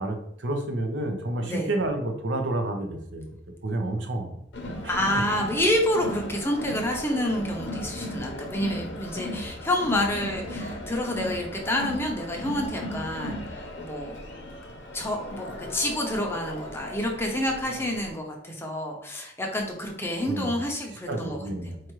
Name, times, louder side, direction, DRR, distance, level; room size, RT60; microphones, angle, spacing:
voice 1, 0.0-3.3 3.6-4.4 4.8-5.2 20.3-20.5 21.1-21.7, right 2 dB, 80° right, 5 dB, 0.7 m, -30 dB
Crowd, 4.5-18.1, left 1 dB, 85° left, 0.7 m, -37 dB
voice 2, 4.8-14.2 14.9-21.4 21.7-21.9, left 1 dB, 15° left, 1 dB, 0.6 m, -28 dB
4.4 x 2.4 x 3.0 m, 0.76 s
head